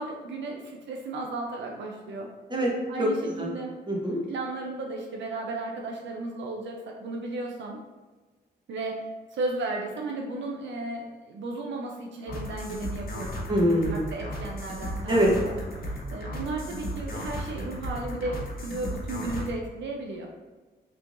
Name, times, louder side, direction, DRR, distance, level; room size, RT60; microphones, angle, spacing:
voice 1, 0.0-2.3 2.9-3.8 4.3-7.8 8.7-9.1 9.3-13.4 13.9-15.5 15.9-20.3, right 2 dB, 80° right, 0 dB, 0.5 m, -34 dB
voice 2, 3.9-4.2 13.5-14.0 15.1-15.3, equal, 25° right, -3 dB, 1.0 m, -23 dB
sound 1, 12.3-19.5, equal, 55° left, 0.8 m, -35 dB
3.4 x 3.1 x 2.5 m, 1.3 s
cardioid pair, 80°, 19 cm